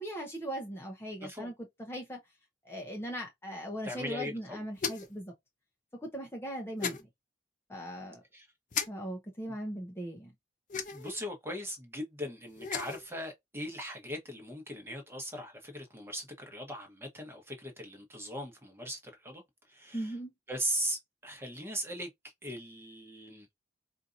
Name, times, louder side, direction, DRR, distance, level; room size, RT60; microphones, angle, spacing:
voice 1, 0.0-1.5 1.8-2.2 2.6-5.3 6.0-7.1 7.7-8.2 8.9-10.3 19.9-20.3, equal, 15° left, 0.7 m, -39 dB
voice 2, 1.2-1.5 3.8-4.6 6.8-6.9 8.3-8.5 9.5-9.6 10.9-19.4 19.7-20.1 20.5-22.1 22.4-23.5, equal, 15° right, 1.1 m, -39 dB
sound 1, 4.8-5.2 6.8-7.0 8.7-8.9 10.7-11.2 12.5-13.0, left 6 dB, 45° left, 0.7 m, -35 dB
4.4 x 2.6 x 2.5 m
head